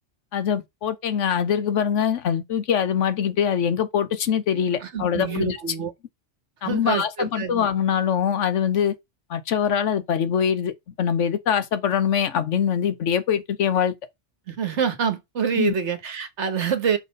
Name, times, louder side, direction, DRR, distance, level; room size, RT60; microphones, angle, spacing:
voice 1, 0.3-5.6 6.6-9.0 9.3-10.7 11.0-13.9 15.5-15.7, left 8 dB, 80° left, 1.2 m, -23 dB
voice 2, 4.5-5.9 6.6-7.7 14.5-17.0, right 7 dB, 70° right, 1.5 m, -26 dB
5.9 x 4.1 x 5.0 m
omnidirectional pair, 1.2 m